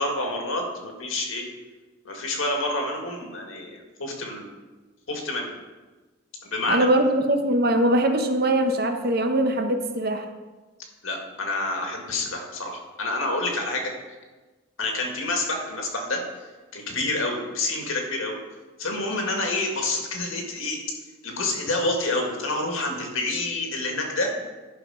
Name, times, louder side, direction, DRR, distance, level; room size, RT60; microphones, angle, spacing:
voice 1, 0.0-1.4 2.0-4.5 5.1-5.5 6.4-6.9 11.0-13.9 14.8-16.2 16.7-18.3 18.8-20.8 21.2-24.3, left 2 dB, 80° left, 2 dB, 2.0 m, -28 dB
voice 2, 6.7-10.2, right 1 dB, 50° right, 6 dB, 0.9 m, -22 dB
11.0 x 5.6 x 5.6 m, 1.3 s
head